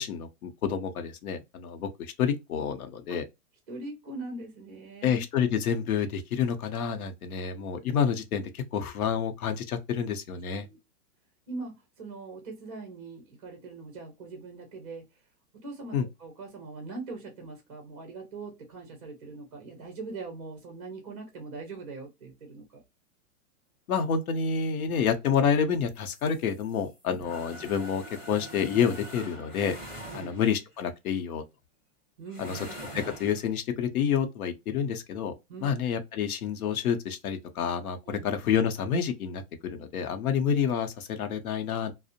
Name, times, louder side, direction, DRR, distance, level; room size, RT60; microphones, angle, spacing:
voice 1, 0.0-3.2 5.0-10.7 15.9-16.0 23.9-29.8 30.1-31.4 32.4-32.6 33.2-35.3 35.6-41.9, left 7 dB, 80° left, 0.7 m, -28 dB
voice 2, 3.7-5.2 7.3-7.5 10.6-10.8 11.5-15.0 15.5-22.8 27.1-27.2 30.1-30.3 32.2-32.7 35.5-35.8 38.1-38.3, right 3 dB, 30° right, 0.5 m, -41 dB
sound 1, 25.9-30.7 32.3-33.5, equal, 5° left, 1.2 m, -44 dB
2.5 x 2.0 x 2.7 m
supercardioid pair, 180°, 43 cm